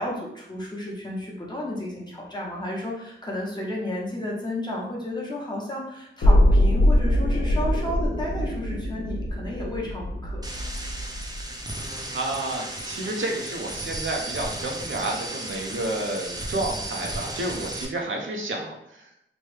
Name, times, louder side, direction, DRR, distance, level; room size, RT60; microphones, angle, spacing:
voice 1, 0.0-10.4, left 1 dB, 20° left, -4 dB, 0.9 m, -32 dB
sound 1, 6.2-12.2 12.5-12.6, left 1 dB, 75° left, 0.5 m, -23 dB
sound 2, 10.4-17.9, right 1 dB, 20° right, 0.5 m, -34 dB
voice 2, 12.1-19.1, right 2 dB, 70° right, 0 dB, 0.6 m, -30 dB
3.0 x 2.2 x 3.2 m, 0.81 s
wide cardioid pair, 85°, 21 cm